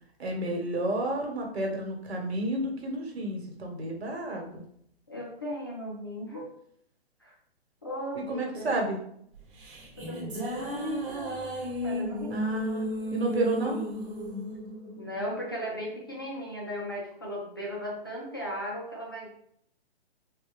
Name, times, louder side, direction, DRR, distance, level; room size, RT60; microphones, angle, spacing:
voice 1, 0.2-4.6 8.3-9.0 12.3-13.8, right 1 dB, 80° right, 1 dB, 1.3 m, -31 dB
voice 2, 5.1-6.5 7.2-7.3 7.8-8.8 10.0-11.4 11.8-12.4 15.0-19.3, equal, 25° left, -3 dB, 0.3 m, -36 dB
sound 1, 9.3-15.9, equal, 55° right, 1.0 m, -34 dB
3.8 x 2.3 x 3.3 m, 0.68 s
hypercardioid pair, 165°, 32 cm